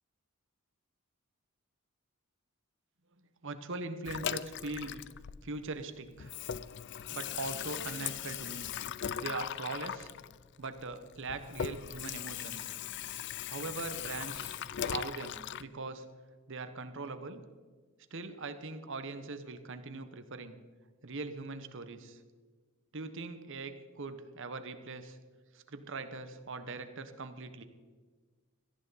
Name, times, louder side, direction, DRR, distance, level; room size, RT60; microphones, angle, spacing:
voice 1, 3.4-5.0 5.4-6.3 7.1-8.7 9.2-10.1 10.6-12.7 13.5-14.6 14.8-16.0 16.5-17.4 18.1-20.6 21.0-22.2 22.9-25.2 25.5-27.6, right 3 dB, 60° right, 9 dB, 1.2 m, -41 dB
Water tap faucet / Sink (filling or washing), 4.0-5.8 6.1-15.6, left 10 dB, 55° left, 0.4 m, -39 dB
18.0 x 14.0 x 4.2 m, 1.4 s
head